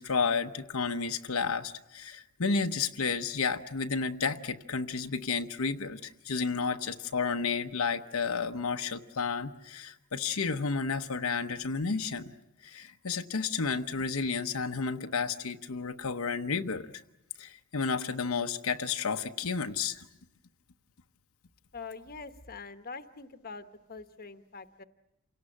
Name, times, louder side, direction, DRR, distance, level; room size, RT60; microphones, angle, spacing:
voice 1, 0.0-12.3 12.6-16.9 17.4-20.0, left 5 dB, 80° left, 6 dB, 0.9 m, -31 dB
voice 2, 21.7-24.8, left 4 dB, 45° left, 9 dB, 1.1 m, -44 dB
28.0 x 18.0 x 9.8 m, 0.91 s
head